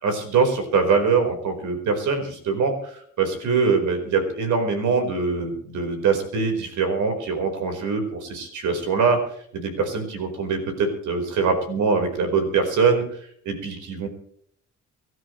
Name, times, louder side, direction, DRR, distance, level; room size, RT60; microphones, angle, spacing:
voice 1, 0.0-9.2 9.5-13.0 13.4-14.1, right 5 dB, 75° right, 5 dB, 4.7 m, -23 dB
25.0 x 13.0 x 3.2 m, 0.65 s
cardioid pair, 90°, 30 cm